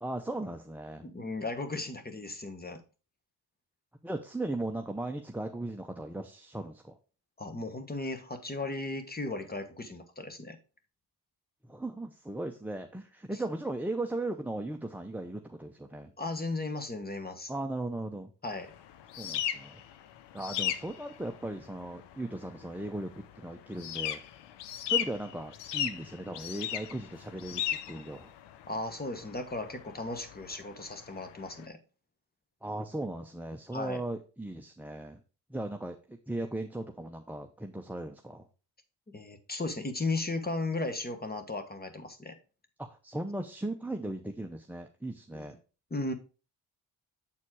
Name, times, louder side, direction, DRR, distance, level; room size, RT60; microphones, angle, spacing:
voice 1, 0.0-1.1 4.0-6.9 11.7-16.1 17.5-18.3 19.2-19.8 20.3-23.1 23.4-24.2 24.8-28.3 32.6-35.2 35.5-38.5 42.8-45.5, right 2 dB, 5° right, 0.7 m, -37 dB
voice 2, 1.0-2.8 7.4-10.6 16.2-17.5 18.4-18.7 28.7-31.8 33.7-34.0 39.1-42.3 45.3-45.5 45.9-46.1, left 2 dB, 25° left, 1.3 m, -36 dB
sound 1, 18.5-31.7, left 10 dB, 85° left, 0.7 m, -37 dB
7.4 x 4.3 x 4.7 m
cardioid pair, 75°, 40 cm